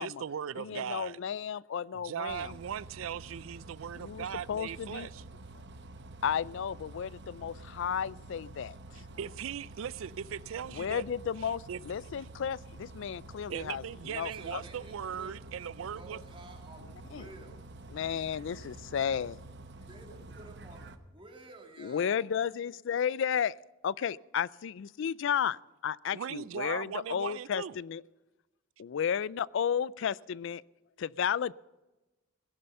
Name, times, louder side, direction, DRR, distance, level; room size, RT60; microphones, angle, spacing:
voice 1, 0.0-1.2 1.9-5.2 8.9-11.0 11.4-11.8 13.5-16.2 26.1-27.8, right 8 dB, 75° right, 0.4 m, -39 dB
voice 2, 0.6-2.5 4.0-5.1 6.2-9.0 10.7-14.6 17.1-17.3 17.9-19.4 21.8-23.6 23.8-28.0 28.8-30.6 31.0-31.5, left 8 dB, 65° left, 0.4 m, -33 dB
Bus, 2.3-21.0, right 2 dB, 60° right, 1.0 m, -49 dB
voice 3, 14.3-15.4 15.8-17.7 19.9-22.3, right 2 dB, 25° right, 2.2 m, -52 dB
17.0 x 11.0 x 5.5 m
head